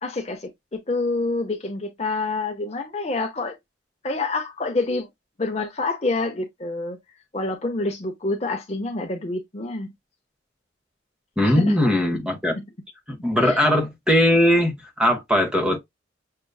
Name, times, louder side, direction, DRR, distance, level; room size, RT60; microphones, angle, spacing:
voice 1, 0.0-3.6 4.0-5.1 5.4-7.0 7.3-9.9 11.4-11.8 12.1-12.2 12.6-12.7 13.4-13.6, left 3 dB, 35° left, 0.6 m, -27 dB
voice 2, 11.4-12.5 13.1-15.8, left 1 dB, 5° right, 0.9 m, -20 dB
6.5 x 2.4 x 2.3 m
head